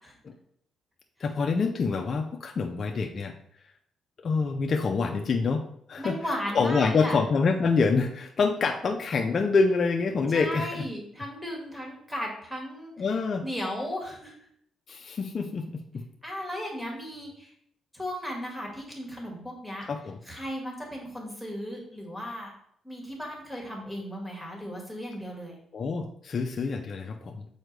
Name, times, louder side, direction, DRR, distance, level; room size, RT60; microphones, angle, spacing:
voice 1, 1.2-3.3 4.2-5.6 5.9-10.8 13.0-13.4 14.9-15.7 15.9-16.0 19.8-20.2 25.7-27.5, left 4 dB, 45° left, 3 dB, 0.5 m, -26 dB
voice 2, 6.0-7.2 10.1-13.1 13.4-14.3 16.2-17.5 17.9-19.9 20.3-22.5 22.8-25.6, equal, 5° right, -1 dB, 1.9 m, -36 dB
6.5 x 4.4 x 3.3 m, 0.67 s
cardioid pair, 90°, 0 cm